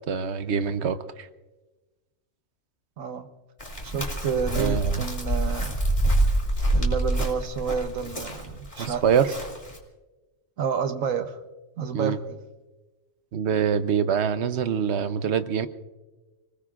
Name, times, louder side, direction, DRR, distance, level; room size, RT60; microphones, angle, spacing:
voice 1, 0.1-1.3 4.6-5.1 8.8-9.3 11.9-12.2 13.3-15.7, right 7 dB, 60° right, 12 dB, 1.0 m, -25 dB
voice 2, 3.0-3.3 3.8-5.8 6.7-9.2 10.6-11.4 11.8-12.4, right 6 dB, 80° right, 8 dB, 1.4 m, -30 dB
Chirp tweet, 3.6-9.8, right 1 dB, 25° left, 2.8 m, -26 dB
29.5 x 20.0 x 2.5 m, 1.2 s
omnidirectional pair, 1.4 m